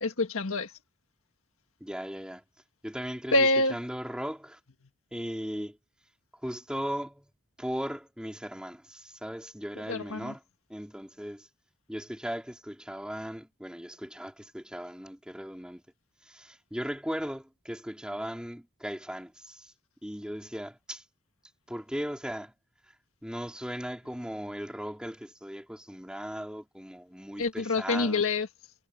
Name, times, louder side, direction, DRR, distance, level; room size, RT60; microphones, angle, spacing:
voice 1, 0.0-0.7 3.3-3.8 9.9-10.3 27.4-28.5, left 2 dB, 65° left, 1.6 m, -26 dB
voice 2, 1.8-2.4 2.8-3.3 3.7-4.6 5.1-5.8 6.4-7.3 7.6-10.4 10.7-11.5 11.9-15.8 16.2-19.7 20.0-21.0 21.7-22.5 23.2-28.2, equal, 5° right, 4.1 m, -37 dB
head